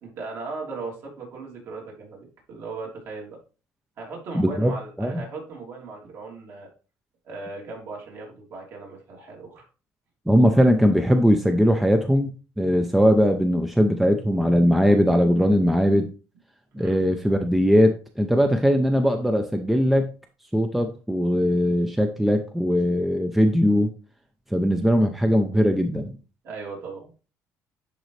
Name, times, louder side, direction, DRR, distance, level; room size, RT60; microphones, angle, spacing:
voice 1, 0.0-3.4 4.0-6.7 7.2-9.6 16.7-17.0 26.4-27.1, right 3 dB, 55° right, -1 dB, 3.1 m, -37 dB
voice 2, 4.3-4.7 5.0-5.2 10.3-12.3 12.6-16.1 16.7-20.1 20.5-23.9 24.5-26.2, equal, 5° right, 5 dB, 0.6 m, -20 dB
10.5 x 3.9 x 3.3 m, 0.33 s
cardioid pair, 130°, 6 cm